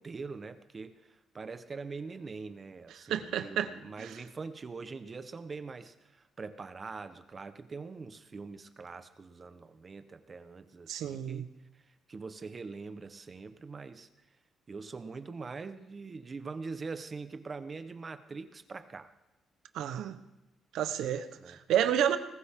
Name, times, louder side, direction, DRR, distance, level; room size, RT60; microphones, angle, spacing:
voice 1, 0.0-11.5 12.1-14.1 14.7-19.1 21.4-21.6, right 4 dB, 35° right, 1.1 m, -43 dB
voice 2, 3.1-3.7 4.0-4.1 10.9-11.5 19.7-20.2 20.7-22.2, right 10 dB, 80° right, 1.1 m, -30 dB
20.0 x 15.0 x 3.8 m
cardioid pair, 90°, 0 cm